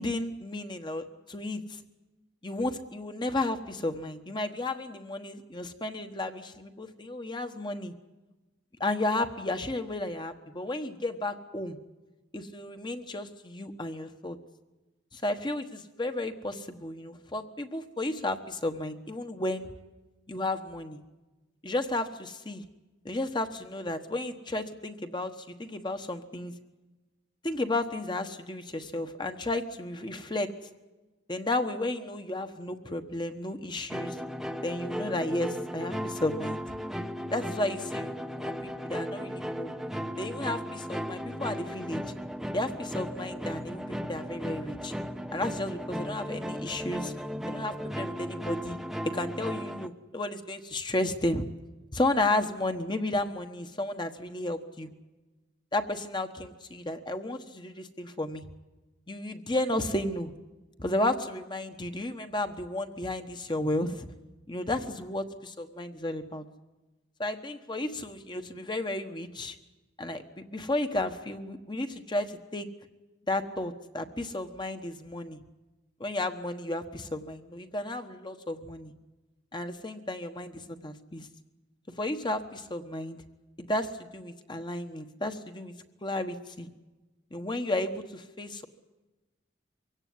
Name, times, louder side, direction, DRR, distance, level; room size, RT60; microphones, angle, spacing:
voice 1, 0.0-1.8 2.4-7.9 8.8-11.8 12.3-14.4 15.1-19.7 20.3-21.0 21.6-22.6 23.0-26.5 27.4-30.5 31.3-34.2 34.6-36.6 37.3-38.1 38.4-39.7 40.2-42.0 42.5-44.9 45.3-47.1 47.5-48.8 49.1-51.4 51.9-54.9 55.7-58.5 59.1-60.3 60.8-64.1 64.5-66.4 67.2-69.6 70.0-72.7 73.3-75.4 76.0-78.9 79.5-81.3 82.0-83.2 83.6-85.7 86.0-86.7 87.3-88.7, left 1 dB, 25° left, 7 dB, 1.2 m, -33 dB
sound 1, 33.9-49.9, equal, ahead, 0.8 m, -36 dB
23.5 x 17.0 x 9.6 m, 1.1 s
head